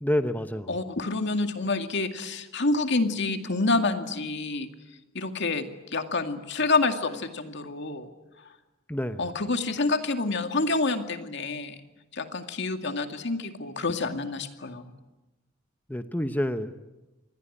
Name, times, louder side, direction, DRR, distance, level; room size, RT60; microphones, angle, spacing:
voice 1, 0.0-0.7 8.9-9.2 15.9-16.8, left 1 dB, 10° left, 9 dB, 0.9 m, -28 dB
voice 2, 0.7-4.7 5.1-8.1 9.2-11.8 12.1-14.9, left 3 dB, 60° left, 7 dB, 2.2 m, -28 dB
27.0 x 20.5 x 9.8 m, 1.0 s
head